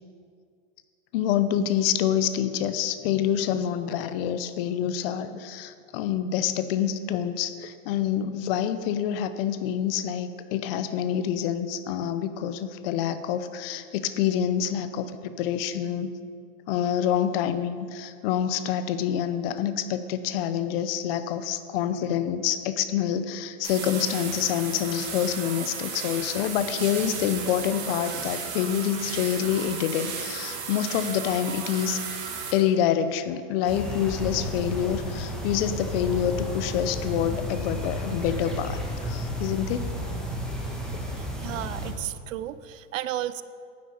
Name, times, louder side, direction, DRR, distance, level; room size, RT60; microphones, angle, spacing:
voice 1, 1.1-16.1 16.7-32.0 32.5-39.8, left 9 dB, 50° left, 12 dB, 0.8 m, -27 dB
sound 1, 23.6-32.5, right 6 dB, 40° right, 2.7 m, -34 dB
sound 2, 33.6-41.9, equal, ahead, 1.4 m, -32 dB
voice 2, 41.2-43.4, right 13 dB, 80° right, 15 dB, 0.7 m, -33 dB
11.0 x 9.6 x 5.0 m, 2.2 s
supercardioid pair, 140°, 39 cm